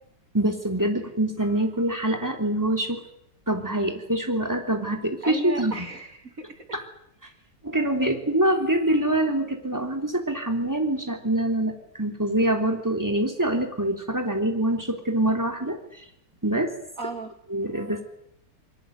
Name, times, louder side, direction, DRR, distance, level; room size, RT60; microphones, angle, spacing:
voice 1, 0.3-3.0 3.5-5.9 6.7-6.8 7.6-15.8 16.4-16.7 17.5-18.0, right 1 dB, 10° right, 4 dB, 3.5 m, -25 dB
voice 2, 5.2-6.8 8.0-8.1 17.0-17.3, right 3 dB, 50° right, 6 dB, 2.9 m, -35 dB
22.0 x 20.0 x 9.4 m, 0.75 s
omnidirectional pair, 1.9 m